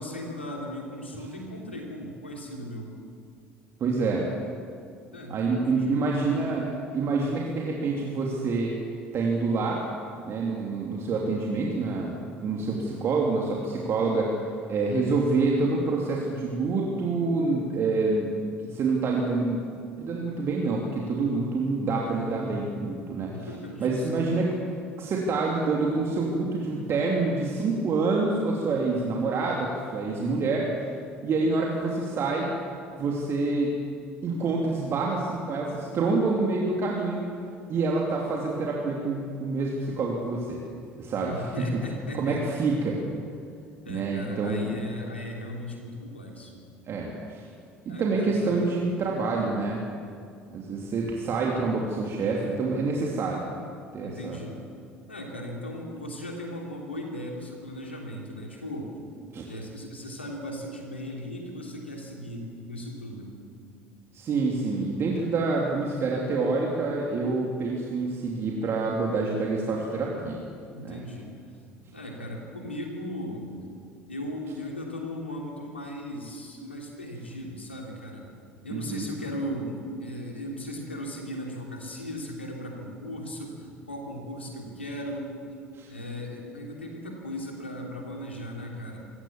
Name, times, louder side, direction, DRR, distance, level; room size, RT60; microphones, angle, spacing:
voice 1, 0.0-2.9 5.1-6.3 23.3-24.3 41.2-42.4 43.8-46.6 47.8-48.6 54.0-54.6 55.1-58.9 59.5-63.4 65.5-65.6 70.7-71.3 71.9-73.5 74.1-78.3 78.6-85.3 85.9-89.0, equal, 90° left, 0 dB, 3.0 m, -37 dB
voice 2, 3.8-4.3 5.3-6.7 6.9-8.7 9.1-9.8 10.2-14.3 14.7-18.4 18.6-19.6 20.0-23.5 23.8-24.5 25.0-30.7 31.2-32.5 33.0-33.8 34.2-37.3 37.7-40.6 41.0-41.6 42.1-43.0 43.9-44.7 46.9-47.5 48.0-49.8 50.5-53.4 53.9-54.4 59.3-59.4 64.1-70.4 70.8-71.0 78.7-79.1 85.7-85.9, right 3 dB, 45° right, -2 dB, 3.0 m, -27 dB
24.5 x 14.5 x 7.3 m, 2.3 s
figure-of-eight pair, 60°, 6 cm